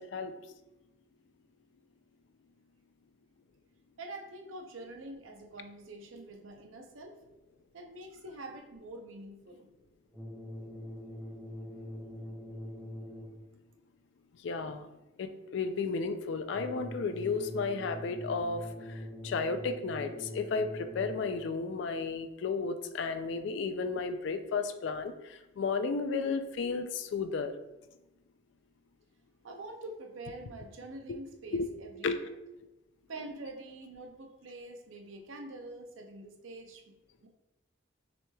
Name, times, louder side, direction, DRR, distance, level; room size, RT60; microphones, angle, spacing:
voice 1, 4.0-7.2 7.7-9.7 29.4-32.0 33.1-36.8 37.2-37.3, right 2 dB, 80° right, 3 dB, 0.6 m, -45 dB
sound 1, 10.1-13.6 16.5-21.6, left 1 dB, ahead, 0.5 m, -43 dB
voice 2, 14.4-14.9 15.2-18.9 19.2-27.5 31.1-31.2 31.5-31.7 32.0-32.2, left 4 dB, 60° left, 9 dB, 0.3 m, -33 dB
6.0 x 3.1 x 2.3 m, 0.99 s
head